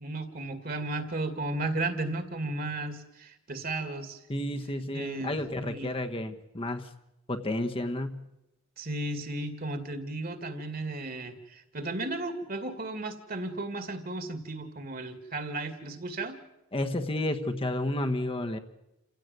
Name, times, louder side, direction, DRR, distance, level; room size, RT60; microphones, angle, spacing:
voice 1, 0.0-4.2 4.9-5.9 8.8-16.4, right 2 dB, 45° right, 9 dB, 2.4 m, -34 dB
voice 2, 4.3-6.9 7.3-8.3 16.7-18.6, left 1 dB, 25° left, 5 dB, 1.2 m, -31 dB
28.0 x 16.5 x 9.2 m, 0.93 s
head